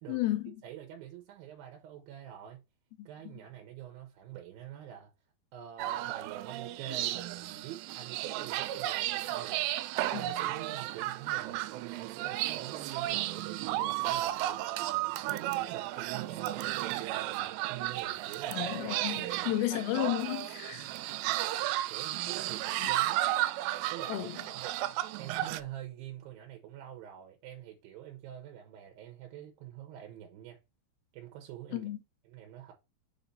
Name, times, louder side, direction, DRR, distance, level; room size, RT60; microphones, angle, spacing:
voice 1, 0.1-0.5 10.1-10.2 18.5-20.9 22.8-22.9 24.1-24.3 31.7-32.0, left 15 dB, 80° left, 2.5 m, -33 dB
voice 2, 0.6-2.6 3.1-5.1 5.5-9.7 10.1-14.6 15.3-18.6 19.1-19.5 20.7-20.9 21.9-23.3 23.9-30.6 31.1-31.9 32.2-32.7, right 11 dB, 70° right, 2.5 m, -47 dB
sound 1, 5.8-25.6, right 15 dB, 90° right, 2.7 m, -33 dB
7.0 x 2.8 x 5.3 m
omnidirectional pair, 4.8 m